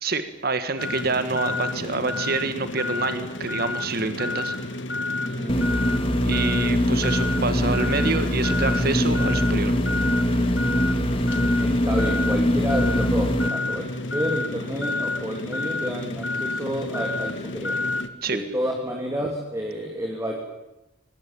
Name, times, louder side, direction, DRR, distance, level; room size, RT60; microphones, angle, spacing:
voice 1, 0.0-4.5 6.2-9.7 18.2-18.4, right 3 dB, 50° right, 10 dB, 1.7 m, -27 dB
sound 1, 0.8-18.1, left 2 dB, 70° left, 1.8 m, -30 dB
voice 2, 5.2-5.6 11.6-13.9 14.1-17.8 18.3-20.4, equal, 15° right, 0 dB, 3.1 m, -30 dB
sound 2, 5.5-13.5, equal, 30° left, 2.2 m, -23 dB
23.5 x 20.0 x 9.1 m, 0.92 s
head